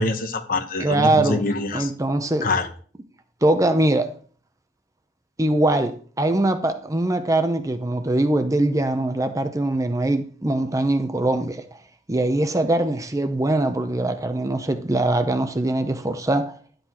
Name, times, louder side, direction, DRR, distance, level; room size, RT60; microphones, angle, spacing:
voice 1, 0.0-1.9 2.4-2.7, left 2 dB, 55° left, 1.0 m, -24 dB
voice 2, 0.8-1.4 1.7-2.5 3.4-4.1 5.4-11.6 12.1-16.5, right 2 dB, 20° right, 0.6 m, -22 dB
11.5 x 7.8 x 3.0 m
head